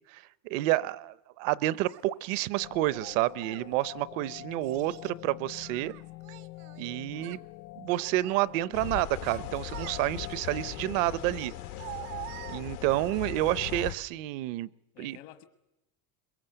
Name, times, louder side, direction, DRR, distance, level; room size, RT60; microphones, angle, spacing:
voice 1, 0.1-5.9 6.8-7.4 7.8-11.5 12.5-14.7 15.0-15.2, right 16 dB, 60° right, 20 dB, 0.7 m, -29 dB
Child speech kid speaking, 1.9-2.0 2.9-3.7 4.6-5.2 5.6-6.9 7.1-7.5 7.9-8.5 9.0-10.3 11.3-13.1, right 17 dB, 80° right, 1.4 m, -45 dB
sound 1, 2.6-13.9, left 19 dB, 50° left, 0.7 m, -46 dB
sound 2, 8.7-13.9, left 15 dB, 90° left, 1.4 m, -40 dB
voice 2, 12.7-13.1 14.9-15.4, left 13 dB, 70° left, 9 dB, 1.4 m, -52 dB
22.5 x 22.5 x 7.8 m, 0.97 s
cardioid pair, 175°, 43 cm